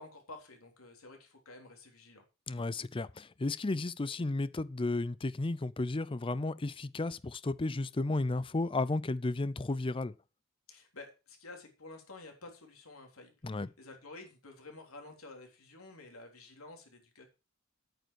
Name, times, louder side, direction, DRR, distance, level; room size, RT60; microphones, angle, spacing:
voice 1, 0.0-2.2 10.7-17.3, left 2 dB, 85° left, 3.6 m, -51 dB
voice 2, 2.5-10.1 13.4-13.7, left 2 dB, 25° left, 0.5 m, -33 dB
9.1 x 7.9 x 6.4 m
head